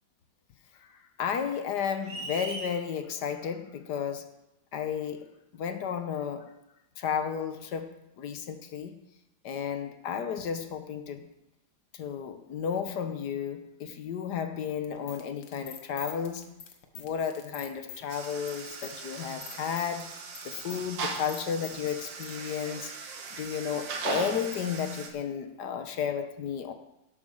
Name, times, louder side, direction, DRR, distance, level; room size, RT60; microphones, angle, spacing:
voice 1, 0.8-4.3 4.7-5.3 5.5-6.5 7.0-9.0 9.4-11.3 11.9-16.5 17.0-20.1 20.4-22.9 23.4-26.7, left 7 dB, 65° left, 8 dB, 1.6 m, -33 dB
sound 1, 2.0-2.8, right 2 dB, 50° right, 1.9 m, -37 dB
sound 2, 14.8-22.3, left 8 dB, 85° left, 1.9 m, -45 dB
sound 3, 18.1-25.1, right 4 dB, 85° right, 2.0 m, -39 dB
11.5 x 7.6 x 6.4 m, 0.89 s
omnidirectional pair, 2.0 m